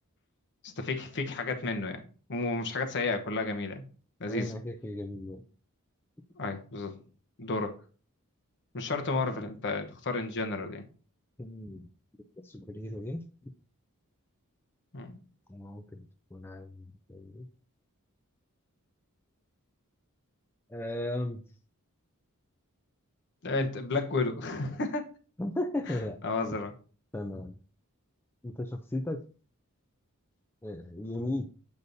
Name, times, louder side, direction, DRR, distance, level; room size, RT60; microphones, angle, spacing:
voice 1, 0.6-2.0 2.3-3.8 4.2-4.5 6.4-7.0 7.4-7.7 8.7-10.9 14.9-15.2 23.4-25.1 25.9-26.0 26.2-26.7, left 3 dB, 55° left, 5 dB, 1.0 m, -32 dB
voice 2, 4.3-5.4 11.4-11.9 12.4-13.2 15.5-16.0 16.3-16.8 17.1-17.5 20.7-21.4 25.4-26.2 27.1-27.6 28.4-29.2 30.6-31.5, left 1 dB, 10° left, 5 dB, 0.4 m, -36 dB
8.0 x 5.3 x 2.7 m, 0.39 s
head